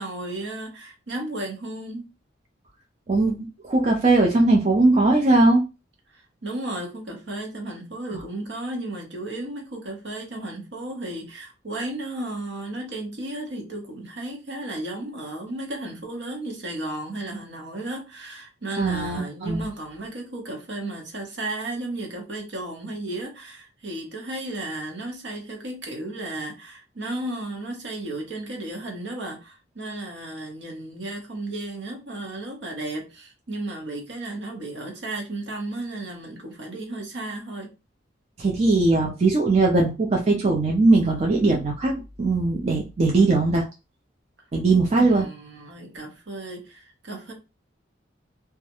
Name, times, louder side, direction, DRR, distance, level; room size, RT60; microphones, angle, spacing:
voice 1, 0.0-2.1 6.1-37.7 45.0-47.3, right 2 dB, 65° right, 0.8 m, -34 dB
voice 2, 3.1-5.6 8.1-8.2 18.8-19.6 38.4-43.7 44.5-45.2, right 2 dB, 35° right, 0.4 m, -20 dB
2.3 x 2.1 x 2.8 m
head